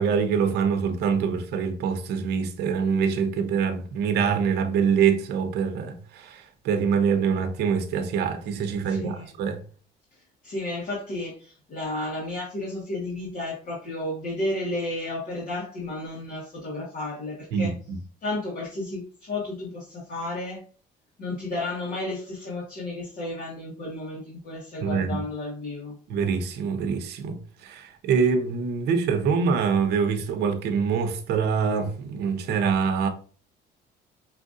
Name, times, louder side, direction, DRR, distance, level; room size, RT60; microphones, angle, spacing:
voice 1, 0.0-9.6 17.5-17.7 24.8-25.2 26.1-33.1, right 6 dB, 75° right, 0.8 m, -25 dB
voice 2, 8.9-9.3 10.4-17.7 18.2-20.6 21.2-25.9, left 2 dB, 55° left, 1.5 m, -32 dB
5.6 x 2.5 x 2.6 m
cardioid pair, 110°, 17 cm